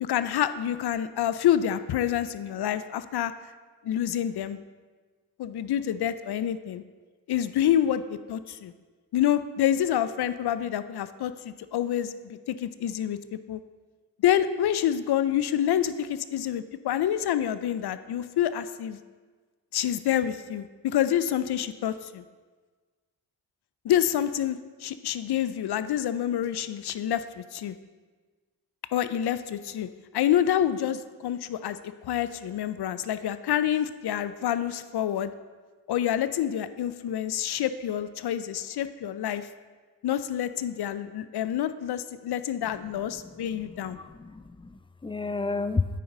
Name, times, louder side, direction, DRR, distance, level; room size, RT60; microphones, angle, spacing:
voice 1, 0.0-3.3 3.8-4.6 5.4-6.8 7.3-8.7 9.1-13.2 13.5-13.6 14.2-19.0 19.7-22.2 23.8-27.7 28.9-29.9 30.1-35.3 35.9-39.5 40.0-44.0, left 10 dB, 70° left, 13 dB, 0.5 m, -27 dB
voice 2, 43.1-45.9, left 3 dB, 15° left, 12 dB, 0.3 m, -32 dB
9.1 x 5.5 x 3.8 m, 1.4 s
cardioid pair, 50°, 40 cm